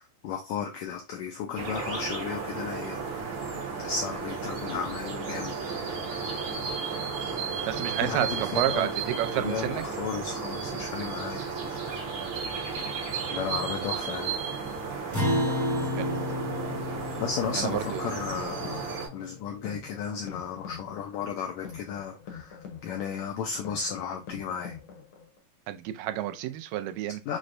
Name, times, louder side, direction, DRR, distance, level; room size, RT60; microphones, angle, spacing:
voice 1, 0.0-3.0 3.8-5.6 5.8-6.1 8.0-8.9 9.4-11.5 13.3-14.3 17.2-24.7 27.3-27.4, left 7 dB, 85° left, 1.6 m, -34 dB
sound 1, 1.6-19.1, right 5 dB, 65° right, 1.3 m, -34 dB
voice 2, 7.7-9.8 16.0-16.1 17.5-18.1 25.7-27.2, right 12 dB, 85° right, 2.2 m, -30 dB
Acoustic guitar, 15.1-19.8, left 1 dB, 15° right, 0.7 m, -32 dB
sound 2, 17.6-25.4, left 7 dB, 65° left, 1.5 m, -45 dB
6.1 x 2.1 x 2.5 m
omnidirectional pair, 3.8 m